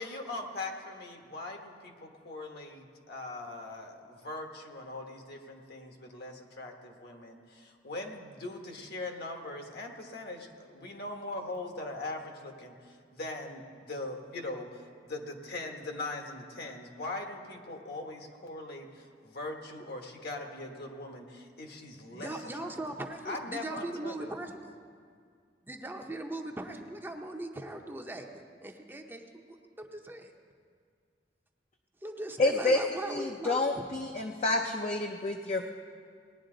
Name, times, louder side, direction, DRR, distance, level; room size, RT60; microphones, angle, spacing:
voice 1, 0.0-22.4 22.6-22.7 23.2-24.3, left 2 dB, 60° left, 3 dB, 1.2 m, -41 dB
voice 2, 22.1-24.6 25.7-29.4 29.8-30.3 32.0-33.8, right 1 dB, 10° right, 3 dB, 0.6 m, -39 dB
voice 3, 32.4-32.8 33.1-35.6, left 2 dB, 40° left, 2 dB, 0.5 m, -28 dB
18.5 x 10.0 x 3.8 m, 2.1 s
head